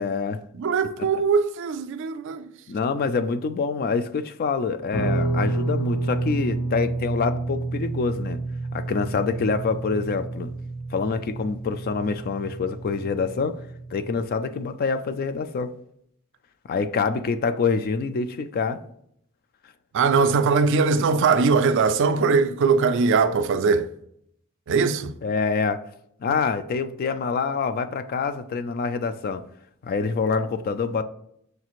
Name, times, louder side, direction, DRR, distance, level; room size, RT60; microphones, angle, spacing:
voice 1, 0.0-0.4 2.7-8.4 8.7-10.5 10.9-13.6 13.9-15.7 16.7-18.8 25.2-25.8 26.2-29.4 29.8-31.0, left 5 dB, 45° left, 0.3 m, -26 dB
voice 2, 0.5-2.5 19.9-23.9 24.7-25.1, right 5 dB, 60° right, 0.4 m, -21 dB
Guitar, 4.9-14.2, right 2 dB, 75° left, 0.9 m, -29 dB
6.4 x 2.4 x 3.0 m
head